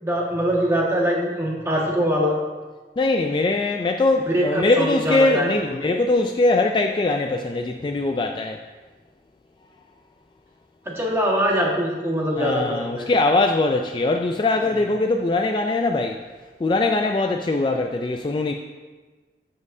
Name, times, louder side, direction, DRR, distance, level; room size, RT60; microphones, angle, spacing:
voice 1, 0.0-2.3 4.2-5.9 10.8-13.1 14.6-14.8, equal, 15° right, -4 dB, 1.6 m, -23 dB
voice 2, 3.0-8.6 12.4-16.2 16.6-18.5, left 2 dB, 25° left, 4 dB, 0.3 m, -21 dB
14.5 x 5.3 x 2.7 m, 1.3 s
head